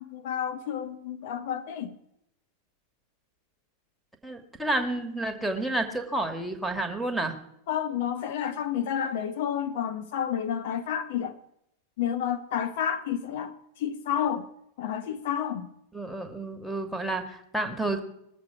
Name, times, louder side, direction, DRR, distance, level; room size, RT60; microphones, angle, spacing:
voice 1, 0.0-2.0 7.7-11.3 12.0-14.5 14.8-15.7, left 9 dB, 55° left, 0.8 m, -30 dB
voice 2, 4.2-7.4 15.9-18.0, right 2 dB, ahead, 1.6 m, -30 dB
20.5 x 7.3 x 4.8 m
figure-of-eight pair, 90°, 0 cm